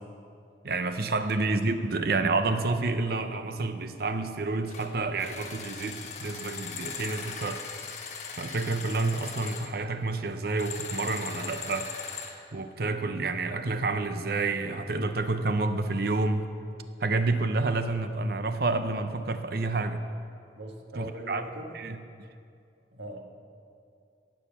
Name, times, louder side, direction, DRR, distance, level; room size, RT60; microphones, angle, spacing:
voice 1, 0.6-8.1 8.4-12.2 12.5-16.5 17.0-20.0 20.9-21.4 21.7-22.0, right 3 dB, 55° right, 9 dB, 0.6 m, -29 dB
sound 1, 4.7-4.9 5.2-9.7 10.5-12.4, left 5 dB, 40° left, 1.3 m, -39 dB
voice 2, 20.6-21.8 22.9-23.2, right 1 dB, 75° right, 2 dB, 1.6 m, -41 dB
18.0 x 6.5 x 7.1 m, 2.4 s
head